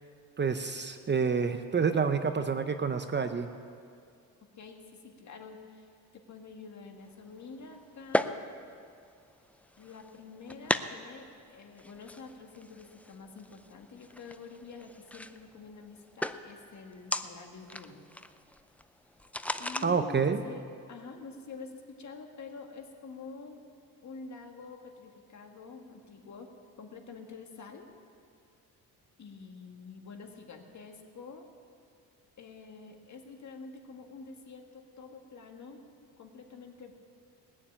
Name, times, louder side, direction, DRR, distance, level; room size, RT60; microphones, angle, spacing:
voice 1, 0.4-3.5 19.8-20.4, right 5 dB, 30° right, 9 dB, 0.7 m, -28 dB
voice 2, 4.6-5.9 6.3-8.4 9.8-18.1 19.6-20.6 20.9-23.6 24.0-26.5 26.8-27.9 29.2-31.5 32.4-36.9, left 4 dB, 45° left, 3 dB, 2.0 m, -47 dB
sound 1, 7.1-19.9, left 1 dB, 5° left, 0.4 m, -38 dB
20.0 x 7.2 x 8.7 m, 2.3 s
cardioid pair, 90°, 39 cm